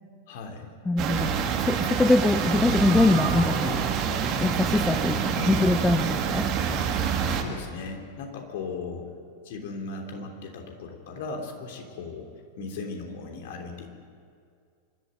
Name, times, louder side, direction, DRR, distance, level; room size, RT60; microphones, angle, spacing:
voice 1, 0.3-0.8 5.3-5.6 7.3-9.1 9.4-12.3 12.6-13.9, left 4 dB, 55° left, 3 dB, 3.3 m, -37 dB
voice 2, 0.9-3.8 4.4-6.5, left 2 dB, 10° left, 12 dB, 0.5 m, -23 dB
sound 1, 1.0-7.4, right 7 dB, 35° right, 2.1 m, -26 dB
25.5 x 12.5 x 9.2 m, 2.2 s
figure-of-eight pair, 90°, 0 cm